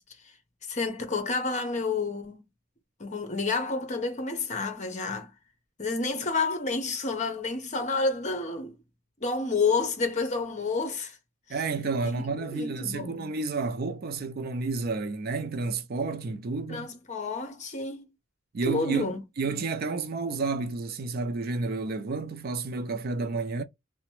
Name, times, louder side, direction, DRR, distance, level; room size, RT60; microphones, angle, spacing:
voice 1, 0.7-2.4 3.0-5.3 5.8-8.8 9.2-11.2 12.5-13.3 16.7-18.1 18.6-19.2, left 4 dB, 35° left, 0.8 m, -29 dB
voice 2, 11.5-16.9 18.5-23.6, right 3 dB, 50° right, 0.4 m, -31 dB
2.9 x 2.1 x 3.0 m
head